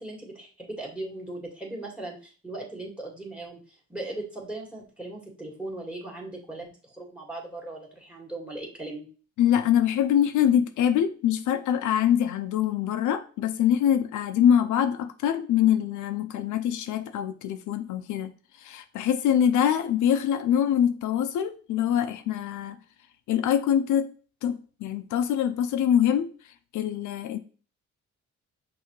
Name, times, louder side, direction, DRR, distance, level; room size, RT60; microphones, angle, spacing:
voice 1, 0.0-9.1, right 2 dB, 5° right, 0 dB, 1.8 m, -38 dB
voice 2, 9.4-18.3 18.6-22.8 23.3-24.1 24.4-26.3 26.7-27.4, left 9 dB, 75° left, 8 dB, 0.5 m, -24 dB
5.7 x 2.8 x 3.1 m, 0.39 s
cardioid pair, 90°, 30 cm